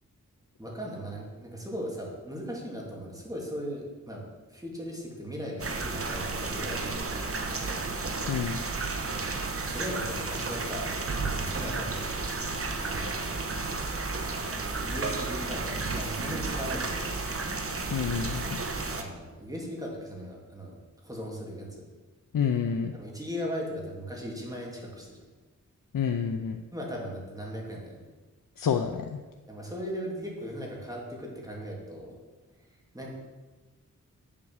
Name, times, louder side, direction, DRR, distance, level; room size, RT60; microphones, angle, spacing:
voice 1, 0.6-7.8 9.2-10.9 11.5-12.1 12.8-13.3 14.3-17.3 18.9-20.8 21.0-21.8 22.9-25.2 26.7-28.0 29.5-32.1 32.9-33.1, equal, 10° right, -3 dB, 2.7 m, -38 dB
sound 1, 5.6-19.0, right 3 dB, 45° right, 1.1 m, -32 dB
voice 2, 8.3-8.6 17.9-18.6 22.3-22.9 25.9-26.6 28.6-29.1, left 7 dB, 85° left, 5 dB, 0.6 m, -28 dB
8.5 x 7.5 x 6.5 m, 1.2 s
wide cardioid pair, 105°, 32 cm